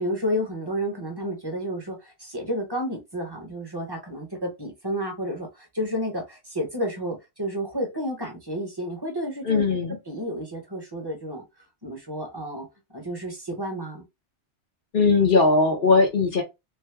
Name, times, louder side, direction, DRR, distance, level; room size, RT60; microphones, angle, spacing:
voice 1, 0.0-9.8 10.1-11.4 11.8-12.7 12.9-14.0, equal, 25° right, 0.9 m, -31 dB
voice 2, 9.5-10.0 14.9-16.4, left 3 dB, 50° left, 0.9 m, -19 dB
3.3 x 2.1 x 3.3 m
omnidirectional pair, 1.2 m